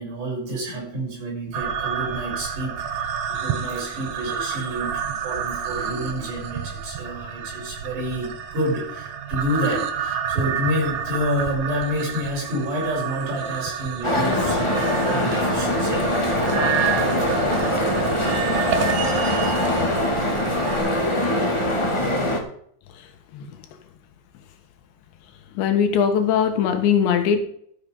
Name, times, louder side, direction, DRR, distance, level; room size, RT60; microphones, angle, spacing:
voice 1, 0.0-16.1, equal, 70° right, -4 dB, 8.8 m, -29 dB
sound 1, 1.5-20.8, right 7 dB, 90° right, 1.6 m, -29 dB
sound 2, 14.0-22.4, left 1 dB, 40° left, 0.4 m, -22 dB
voice 2, 25.6-27.4, left 7 dB, 80° left, 7 dB, 3.6 m, -20 dB
13.5 x 7.7 x 5.5 m, 0.65 s
omnidirectional pair, 5.1 m